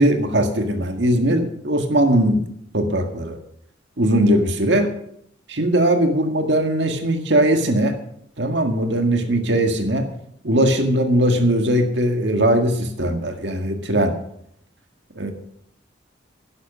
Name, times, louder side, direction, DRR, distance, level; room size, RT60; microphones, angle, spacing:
voice 1, 0.0-2.4 2.7-3.4 4.0-4.9 5.5-8.0 8.4-10.1 10.4-14.1 15.2-15.3, right 1 dB, 65° right, 5 dB, 1.8 m, -19 dB
11.0 x 11.0 x 6.1 m, 0.71 s
head